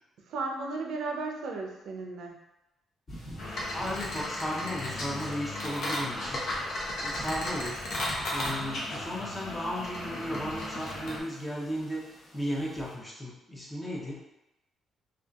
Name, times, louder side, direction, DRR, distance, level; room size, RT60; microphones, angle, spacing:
voice 1, 0.2-2.4, right 3 dB, 80° right, 1 dB, 0.5 m, -35 dB
sound 1, 3.1-13.0, equal, 35° left, 1.1 m, -49 dB
sound 2, 3.4-11.2, left 1 dB, 65° left, 0.7 m, -35 dB
voice 2, 3.7-6.4 6.7-7.8 8.3-14.2, equal, 15° left, -4 dB, 0.7 m, -35 dB
2.7 x 2.4 x 2.3 m, 0.93 s
cardioid pair, 90°, 0 cm